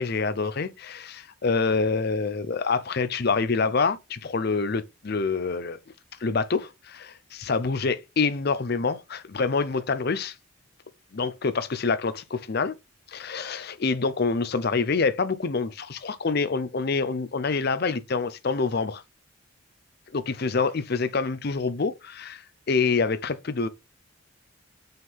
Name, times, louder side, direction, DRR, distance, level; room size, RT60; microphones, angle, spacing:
voice 1, 0.0-5.8 6.2-10.4 11.1-12.7 13.1-19.0 20.1-23.7, left 4 dB, 45° left, 0.5 m, -26 dB
5.5 x 3.7 x 5.5 m
head